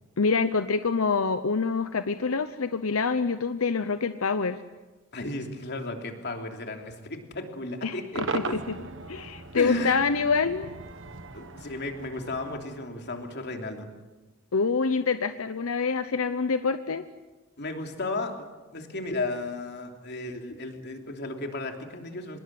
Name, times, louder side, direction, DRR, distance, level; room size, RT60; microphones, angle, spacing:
voice 1, 0.2-4.6 7.8-8.8 9.1-10.7 14.5-17.0, left 4 dB, 85° left, 10 dB, 0.8 m, -26 dB
voice 2, 5.1-8.6 9.5-10.0 10.5-10.6 11.3-13.9 17.6-18.4 18.7-22.4, left 2 dB, 55° left, 3 dB, 3.1 m, -34 dB
Cheering / Crowd / Fireworks, 8.1-13.4, right 3 dB, 65° right, 1.4 m, -38 dB
25.5 x 21.0 x 7.7 m, 1.2 s
head